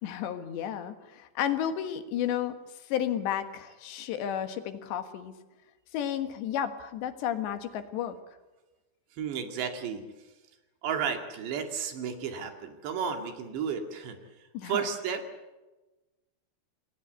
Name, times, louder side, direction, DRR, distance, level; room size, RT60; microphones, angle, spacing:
voice 1, 0.0-2.6 2.9-5.3 5.9-8.2 14.5-14.9, left 10 dB, 80° left, 8 dB, 3.7 m, -32 dB
voice 2, 9.2-10.0 10.8-14.2 14.6-15.2, right 7 dB, 75° right, 5 dB, 4.5 m, -32 dB
28.0 x 19.0 x 8.2 m, 1.1 s
omnidirectional pair, 5.0 m